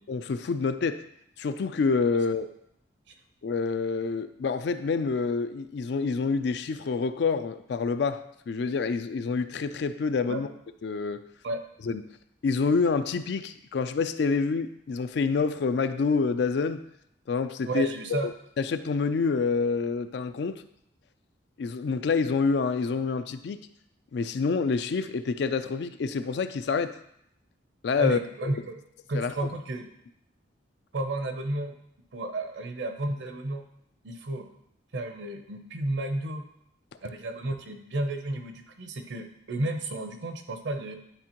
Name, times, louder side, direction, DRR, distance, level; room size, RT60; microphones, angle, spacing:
voice 1, 0.1-1.1 1.4-2.5 3.4-10.5 10.8-11.3 11.9-12.0 12.4-16.8 17.3-18.2 18.6-20.6 21.6-23.6 24.1-27.0 27.8-28.6 29.1-29.5, left 4 dB, 60° left, 11 dB, 0.3 m, -27 dB
voice 2, 17.7-18.3 28.0-28.8 29.1-29.9 30.9-31.8 32.1-33.6 34.0-34.5 34.9-36.4 37.0-40.9, right 2 dB, 65° right, 6 dB, 0.7 m, -32 dB
9.8 x 3.6 x 3.0 m, 0.75 s
head